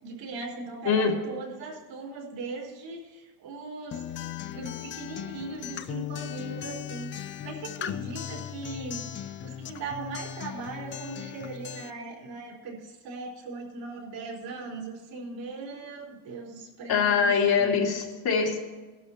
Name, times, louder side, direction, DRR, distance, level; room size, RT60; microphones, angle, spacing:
voice 1, 0.0-4.0 4.5-17.3 17.5-17.8, right 3 dB, 60° right, -3 dB, 4.6 m, -39 dB
voice 2, 0.8-1.2 16.9-18.6, left 6 dB, 50° left, -1 dB, 2.8 m, -23 dB
Acoustic guitar, 3.9-11.9, left 10 dB, 25° left, 0.4 m, -38 dB
19.5 x 12.0 x 3.0 m, 1.3 s
cardioid pair, 120°, 48 cm